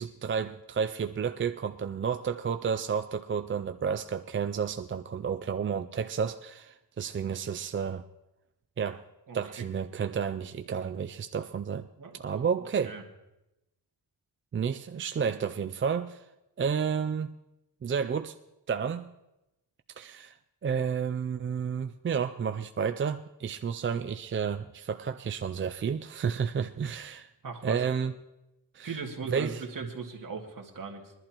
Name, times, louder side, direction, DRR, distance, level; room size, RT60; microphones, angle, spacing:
voice 1, 0.0-8.0 8.8-9.0 9.3-11.9 12.2-12.9 14.5-16.3 16.6-17.3 17.8-18.3 18.7-19.1 20.0-20.4 20.6-27.3 27.6-28.1 28.7-29.0 29.3-29.6, right 6 dB, 30° right, 0.4 m, -31 dB
voice 2, 27.4-27.8 28.8-31.1, right 5 dB, 50° right, 2.0 m, -38 dB
21.5 x 11.5 x 3.0 m
wide cardioid pair, 110°, 42 cm